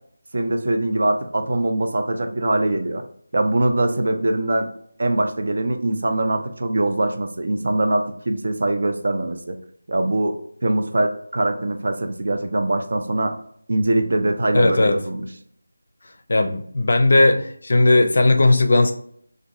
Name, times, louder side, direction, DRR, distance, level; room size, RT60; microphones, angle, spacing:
voice 1, 0.3-3.0 3.3-4.7 5.0-9.6 9.9-13.3 13.7-15.3, right 2 dB, 55° right, 7 dB, 0.5 m, -22 dB
voice 2, 14.5-15.0 16.3-18.9, left 2 dB, 55° left, 6 dB, 0.5 m, -16 dB
3.4 x 2.5 x 3.0 m, 0.63 s
figure-of-eight pair, 165°, 0 cm